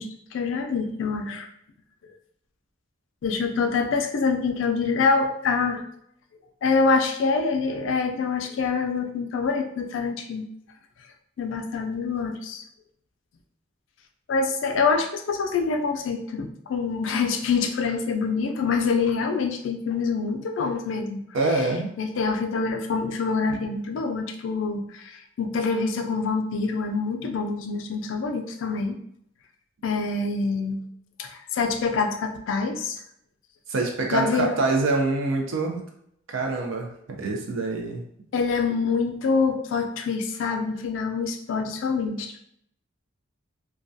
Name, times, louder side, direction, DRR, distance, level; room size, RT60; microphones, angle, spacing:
voice 1, 0.0-1.5 3.2-5.8 6.6-10.5 11.4-12.6 14.3-21.2 21.5-21.7 22.0-29.0 29.8-30.8 31.2-33.0 34.1-34.5 38.3-42.4, left 4 dB, 75° left, 5 dB, 0.3 m, -26 dB
voice 2, 21.3-21.9 33.7-35.8 36.3-38.1, right 3 dB, 90° right, 2 dB, 0.5 m, -25 dB
2.2 x 2.2 x 2.6 m, 0.72 s
head